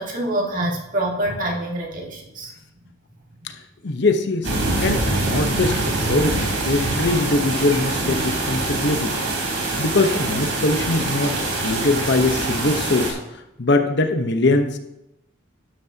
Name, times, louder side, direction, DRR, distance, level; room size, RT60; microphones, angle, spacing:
voice 1, 0.0-2.5, right 1 dB, 45° right, 0 dB, 1.9 m, -26 dB
voice 2, 3.8-4.5 4.8-9.1 9.8-13.2 13.6-14.8, left 2 dB, 60° left, 6 dB, 0.9 m, -22 dB
sound 1, 4.4-13.1, right 2 dB, 75° right, 3.4 m, -24 dB
11.5 x 11.5 x 2.8 m, 0.90 s
head